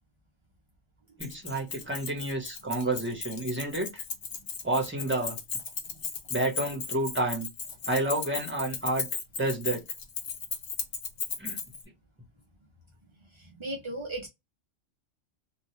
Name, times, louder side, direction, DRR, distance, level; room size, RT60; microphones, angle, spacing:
Keys jangling, 1.2-11.8, left 6 dB, 70° left, 1.0 m, -36 dB
voice 1, 1.2-4.0 4.6-5.4 6.3-7.5 7.8-9.1 9.4-9.8 11.4-11.6, right 2 dB, 10° right, 0.9 m, -30 dB
voice 2, 13.3-14.3, right 1 dB, 50° right, 0.3 m, -37 dB
2.4 x 2.3 x 3.0 m
omnidirectional pair, 1.3 m